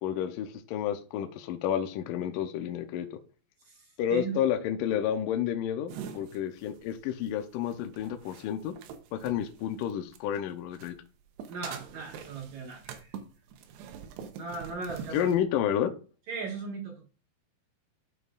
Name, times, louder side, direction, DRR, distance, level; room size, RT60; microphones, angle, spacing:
voice 1, 0.0-3.1 4.0-8.7 9.1-10.9 15.1-15.9, left 9 dB, 85° left, 6 dB, 1.9 m, -30 dB
voice 2, 3.7-4.4 11.5-13.2 14.4-15.3 16.3-17.1, right 4 dB, 55° right, 0 dB, 2.4 m, -38 dB
sound 1, 5.9-10.4 10.7-15.4, right 7 dB, 85° right, 3.1 m, -45 dB
12.0 x 5.4 x 2.4 m, 0.36 s
omnidirectional pair, 4.9 m